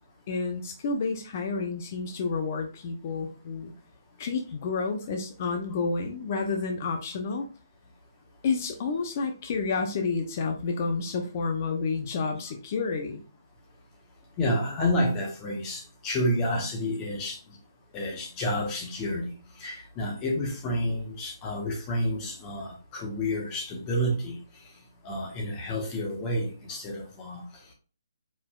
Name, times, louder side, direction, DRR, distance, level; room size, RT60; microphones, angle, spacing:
voice 1, 0.3-3.7 4.2-7.5 8.4-13.2, left 4 dB, 40° left, 0.8 m, -30 dB
voice 2, 14.4-17.4 17.9-24.4 25.0-27.5, left 1 dB, 20° left, 1.4 m, -29 dB
4.9 x 4.1 x 2.5 m
hypercardioid pair, 150°, 2 cm